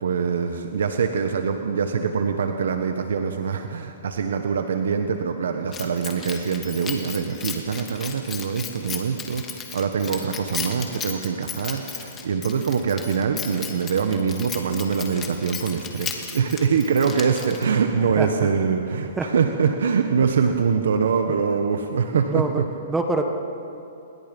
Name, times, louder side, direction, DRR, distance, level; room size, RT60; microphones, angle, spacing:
voice 1, 0.0-22.6, right 6 dB, 80° right, 6 dB, 1.5 m, -24 dB
Keys jangling, 5.7-17.8, left 7 dB, 15° left, 2.2 m, -35 dB
voice 2, 17.9-18.5 19.2-19.3 20.4-20.5 22.1-23.3, right 2 dB, 5° right, 4 dB, 1.5 m, -27 dB
28.5 x 21.5 x 5.5 m, 2.8 s
hypercardioid pair, 155°, 0 cm